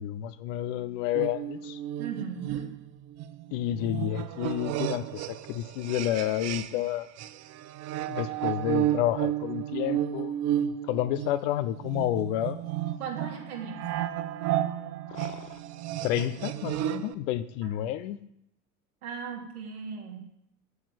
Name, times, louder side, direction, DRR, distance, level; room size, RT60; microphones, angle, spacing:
voice 1, 0.0-1.8 3.5-7.1 8.1-12.6 15.1-15.5 16.0-18.2, left 12 dB, 55° left, 13 dB, 0.9 m, -30 dB
sound 1, 1.1-6.9 7.2-17.1, right 12 dB, 35° right, 0.7 m, -32 dB
voice 2, 2.0-2.6 13.0-13.9 16.1-16.3 17.6-17.7 19.0-20.3, right 6 dB, 70° right, -1 dB, 3.2 m, -37 dB
9.3 x 8.2 x 8.1 m, 0.75 s
figure-of-eight pair, 70°, 45 cm